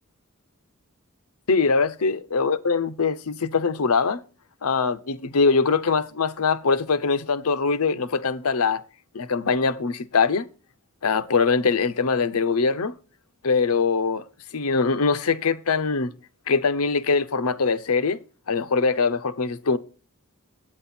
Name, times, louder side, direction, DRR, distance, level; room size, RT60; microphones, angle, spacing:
voice 1, 1.5-4.2 4.6-8.8 9.1-10.5 11.0-12.9 13.4-14.2 14.5-16.1 16.5-18.2 18.5-19.8, left 4 dB, 85° left, 0.8 m, -22 dB
8.8 x 8.8 x 4.3 m
head